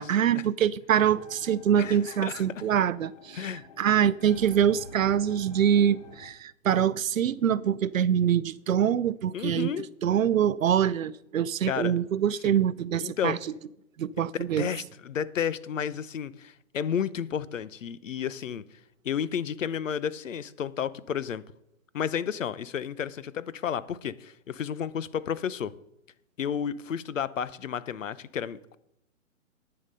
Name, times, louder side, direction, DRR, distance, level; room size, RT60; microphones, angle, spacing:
voice 1, 0.0-3.5 3.8-9.7 10.0-13.4 14.0-14.7, right 9 dB, 70° right, 0.7 m, -24 dB
sound 1, 1.0-6.3, left 3 dB, 30° left, 1.1 m, -48 dB
voice 2, 1.8-2.4 3.3-3.6 9.3-9.9 11.7-11.9 12.4-12.5 13.0-13.5 14.6-18.6 19.0-21.4 21.9-25.7 26.4-28.8, left 8 dB, 65° left, 0.9 m, -32 dB
11.0 x 8.9 x 5.5 m
hypercardioid pair, 175°, 41 cm